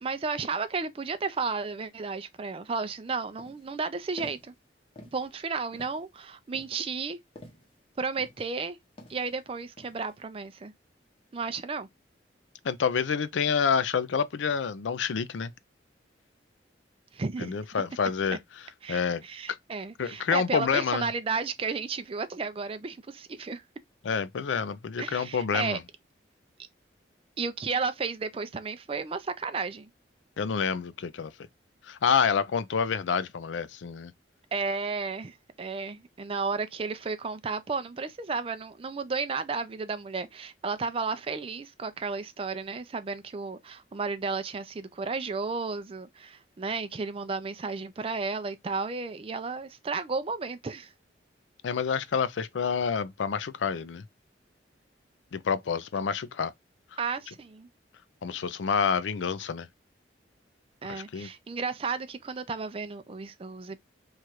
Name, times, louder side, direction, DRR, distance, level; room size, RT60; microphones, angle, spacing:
voice 1, 0.0-4.5 5.1-7.2 8.0-8.8 9.1-10.7 11.3-11.9 17.1-17.6 18.8-23.6 25.0-25.8 26.6-26.7 27.4-29.9 34.5-50.9 57.0-57.7 60.8-63.8, right 4 dB, 30° right, 0.4 m, -33 dB
sound 1, 2.8-3.0 3.4-3.8 4.2-4.6 5.0-5.3 5.7-6.1 6.5-7.8 8.2-8.6 9.0-9.3 9.8-10.2, left 1 dB, 30° left, 0.8 m, -49 dB
voice 2, 12.6-15.5 17.4-18.4 18.9-19.2 19.5-19.6 20.0-21.1 24.0-25.8 30.4-31.3 31.9-34.1 51.6-54.0 55.3-56.5 58.2-59.7 60.8-61.3, left 6 dB, 90° left, 0.4 m, -28 dB
3.0 x 2.4 x 4.3 m
head